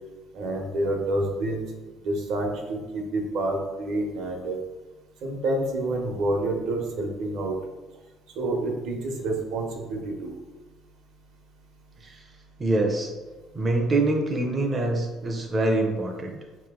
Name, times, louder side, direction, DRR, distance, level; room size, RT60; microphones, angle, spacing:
voice 1, 0.3-1.6 2.0-4.6 5.2-7.5 8.4-10.4, right 2 dB, 70° right, 2 dB, 0.9 m, -28 dB
voice 2, 12.6-13.1 13.5-16.4, right 2 dB, 20° right, 1 dB, 0.5 m, -25 dB
4.6 x 3.0 x 3.6 m, 1.2 s
cardioid pair, 145°, 0 cm